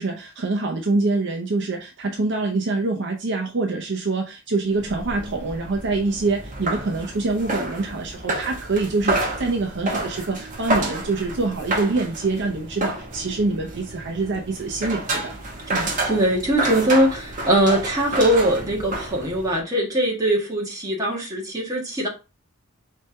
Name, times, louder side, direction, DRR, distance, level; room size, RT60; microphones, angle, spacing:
voice 1, 0.0-15.4 15.7-15.9, right 3 dB, 50° right, 0.6 m, -25 dB
sound 1, 4.7-19.6, right 2 dB, 35° right, 1.1 m, -30 dB
voice 2, 15.7-22.1, right 1 dB, 15° right, 1.4 m, -21 dB
4.3 x 3.3 x 3.2 m
head